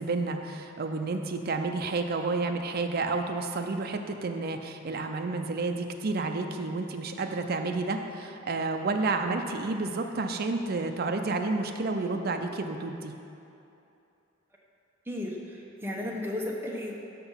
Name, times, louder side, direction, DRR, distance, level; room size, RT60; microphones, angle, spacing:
voice 1, 0.0-13.1, right 3 dB, 50° right, 5 dB, 0.5 m, -30 dB
voice 2, 15.1-17.0, left 1 dB, 10° right, -2 dB, 0.8 m, -34 dB
5.9 x 5.9 x 5.6 m, 2.7 s
head